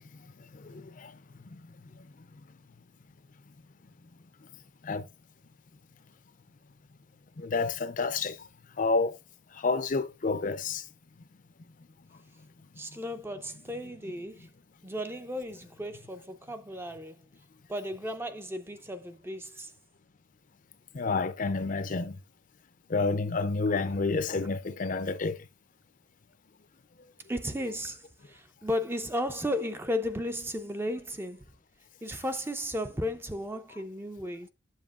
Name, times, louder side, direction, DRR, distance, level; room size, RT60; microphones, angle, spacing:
voice 1, 0.5-1.1 4.8-5.1 7.4-8.4 8.8-9.2 9.6-10.8 20.9-22.2 22.9-25.4, left 4 dB, 40° left, 0.5 m, -29 dB
voice 2, 12.8-14.5 14.8-17.2 17.7-19.7 27.3-31.5 32.0-34.5, left 1 dB, 10° right, 0.5 m, -34 dB
8.2 x 7.3 x 2.4 m
head